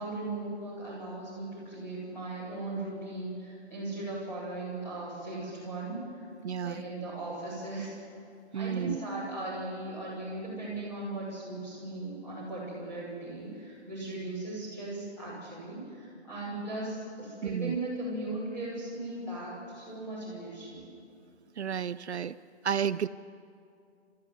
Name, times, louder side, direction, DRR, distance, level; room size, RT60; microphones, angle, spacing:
voice 1, 0.0-6.0 6.6-7.9 8.5-20.8, right 2 dB, 5° left, -9 dB, 5.9 m, -37 dB
voice 2, 6.4-6.8 8.5-9.0 17.4-17.8 21.6-22.4 22.6-23.1, right 8 dB, 70° right, 14 dB, 0.7 m, -31 dB
28.0 x 14.5 x 8.1 m, 2.4 s
hypercardioid pair, 180°, 34 cm